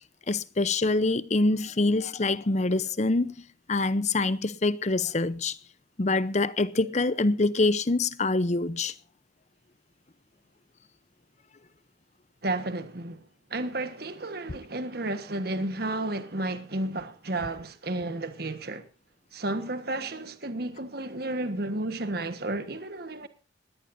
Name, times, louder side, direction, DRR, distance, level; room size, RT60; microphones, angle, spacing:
voice 1, 0.3-3.3 3.7-5.6 6.0-8.9, left 2 dB, 40° left, 0.7 m, -25 dB
voice 2, 12.4-13.2 13.5-18.9 19.3-23.3, right 2 dB, 55° right, 1.5 m, -32 dB
20.0 x 17.5 x 2.7 m
head